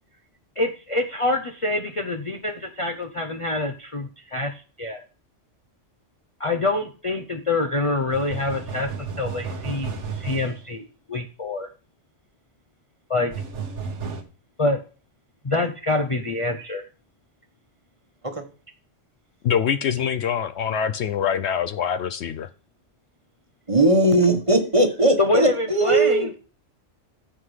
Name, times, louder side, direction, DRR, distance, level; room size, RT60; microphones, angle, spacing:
voice 1, 0.6-5.0 6.4-11.7 13.1-13.3 14.6-14.8 15.4-16.9 25.2-26.4, left 2 dB, 30° left, 0.6 m, -26 dB
sound 1, 8.1-10.6 13.3-14.2, right 5 dB, 70° right, 1.4 m, -33 dB
voice 2, 19.4-22.5, left 8 dB, 65° left, 0.8 m, -24 dB
voice 3, 23.7-26.3, right 2 dB, 25° right, 1.3 m, -19 dB
14.5 x 5.8 x 3.3 m
omnidirectional pair, 1.3 m